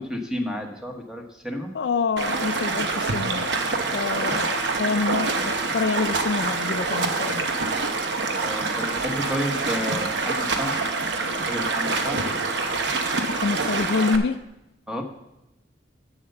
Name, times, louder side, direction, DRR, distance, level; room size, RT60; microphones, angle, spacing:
voice 1, 0.0-1.7 8.4-10.8 11.2-12.2 14.9-15.0, equal, 5° right, 3 dB, 1.1 m, -31 dB
voice 2, 1.7-3.5 3.9-7.5 13.3-14.4, left 4 dB, 70° left, 12 dB, 0.4 m, -27 dB
Stream, 2.2-14.2, right 3 dB, 75° right, 0.9 m, -26 dB
8.0 x 7.2 x 6.7 m, 0.92 s
head